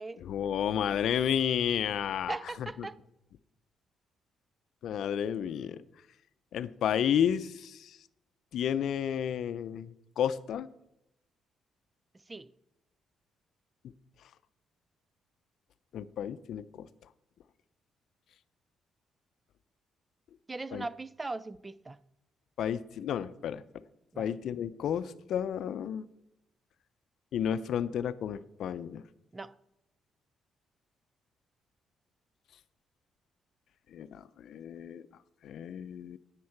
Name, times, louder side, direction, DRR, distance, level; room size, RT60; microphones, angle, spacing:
voice 1, 0.2-2.9 4.8-5.8 6.5-8.0 8.5-10.7 15.9-16.9 20.7-20.8 22.6-23.6 24.2-26.1 27.3-29.0 33.9-35.0 35.4-36.2, left 9 dB, 70° left, 0.5 m, -32 dB
voice 2, 2.3-3.0 12.3-12.5 20.5-22.0 24.1-24.3 29.3-29.6, right 3 dB, 20° right, 0.4 m, -39 dB
9.5 x 9.0 x 5.8 m
cardioid pair, 90°, 0 cm